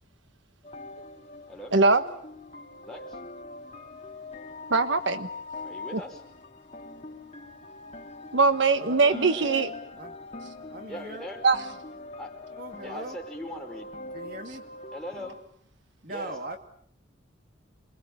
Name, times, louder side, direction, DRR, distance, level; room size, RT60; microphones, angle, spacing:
sound 1, 0.6-15.4, left 3 dB, 35° left, 3.1 m, -42 dB
voice 1, 1.7-2.0 4.7-5.3 5.9-6.0 8.3-9.7 11.4-11.6, right 4 dB, 70° right, 10 dB, 1.3 m, -21 dB
voice 2, 2.8-3.2 5.6-6.2 9.0-9.6 10.9-11.4 12.2-12.3 12.8-13.9 14.9-15.4 16.1-16.4, equal, 5° left, 0 dB, 5.0 m, -40 dB
voice 3, 8.8-9.1 10.0-10.2 10.7-11.2 12.5-13.2 14.1-14.6 16.0-16.6, right 1 dB, 45° right, 5 dB, 2.5 m, -39 dB
27.5 x 22.5 x 8.7 m, 0.65 s
head